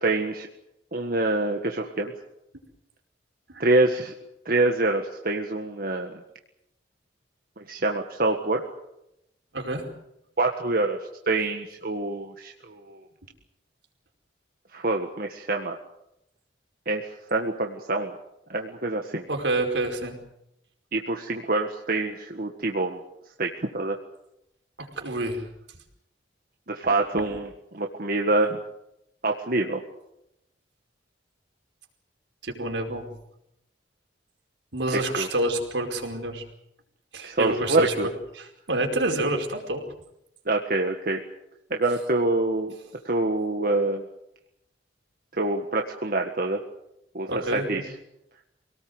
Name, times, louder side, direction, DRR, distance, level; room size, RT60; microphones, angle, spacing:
voice 1, 0.0-0.5 0.9-2.1 3.6-4.1 4.5-6.1 7.6-8.6 10.4-13.0 14.7-15.8 16.9-18.1 18.5-19.2 20.9-23.0 23.4-24.0 26.7-28.6 29.2-29.8 35.2-35.3 37.2-38.1 40.5-41.2 41.7-42.8 43.1-44.0 45.4-46.6 47.1-47.9, right 2 dB, 55° right, 3 dB, 1.7 m, -26 dB
voice 2, 9.5-9.9 19.3-20.1 25.0-25.4 32.4-33.1 34.7-36.4 37.1-37.9 38.4-39.8 47.3-47.8, right 2 dB, 80° right, 3 dB, 5.0 m, -28 dB
26.0 x 18.5 x 8.0 m, 0.84 s
head